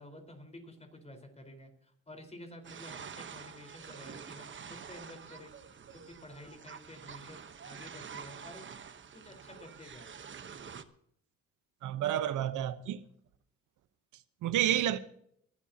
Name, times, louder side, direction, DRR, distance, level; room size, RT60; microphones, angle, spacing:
voice 1, 0.0-5.5 5.9-8.6 9.1-10.1, left 1 dB, 20° left, 4.5 m, -51 dB
sound 1, 2.6-10.8, right 7 dB, 40° right, 1.1 m, -47 dB
voice 2, 11.8-13.0 14.4-15.0, right 11 dB, 80° right, 1.0 m, -30 dB
22.0 x 12.5 x 2.9 m
cardioid pair, 90°, 30 cm